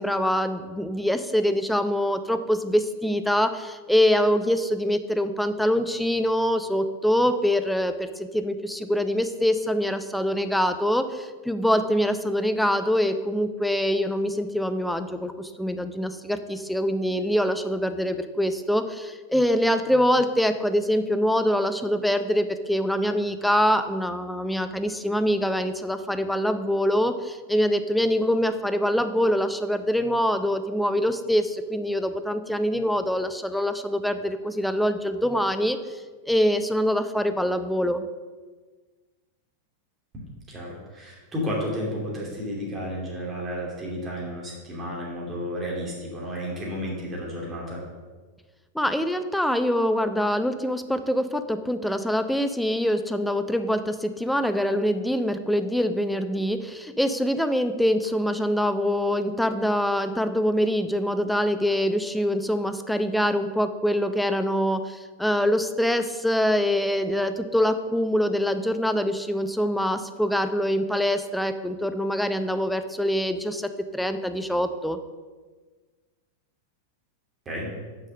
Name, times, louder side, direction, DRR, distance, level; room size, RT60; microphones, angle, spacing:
voice 1, 0.0-36.0 36.3-38.1 48.7-75.0, equal, ahead, 9 dB, 0.5 m, -24 dB
voice 2, 40.5-47.8 77.4-77.7, equal, 20° right, -3 dB, 2.9 m, -32 dB
6.6 x 5.5 x 6.3 m, 1.4 s
figure-of-eight pair, 90°, 0 cm